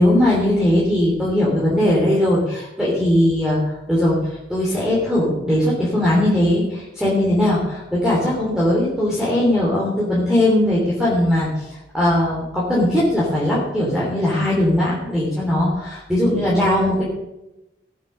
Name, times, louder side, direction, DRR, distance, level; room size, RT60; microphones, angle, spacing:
voice 1, 0.0-17.0, left 1 dB, 5° right, -6 dB, 3.2 m, -19 dB
19.0 x 8.2 x 5.5 m, 0.96 s
head